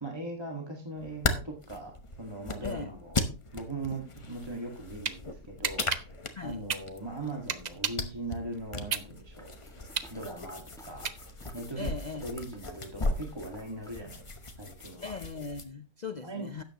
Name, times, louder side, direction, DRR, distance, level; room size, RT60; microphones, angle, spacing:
voice 1, 0.0-3.2 3.5-5.9 6.4-9.5 10.1-11.1 11.5-11.9 12.2-14.2 14.6-15.1 16.2-16.5, right 2 dB, 15° right, 1.8 m, -39 dB
sound 1, 1.0-15.6, left 2 dB, 25° left, 0.8 m, -37 dB
sound 2, 4.6-5.2 5.6-8.1 8.5-11.6, right 7 dB, 60° right, 0.4 m, -34 dB
sound 3, 9.4-14.0 14.4-14.5, equal, ahead, 1.7 m, -55 dB
voice 2, 11.8-12.3 15.0-16.6, left 4 dB, 60° left, 0.4 m, -39 dB
12.5 x 8.9 x 2.9 m
omnidirectional pair, 1.6 m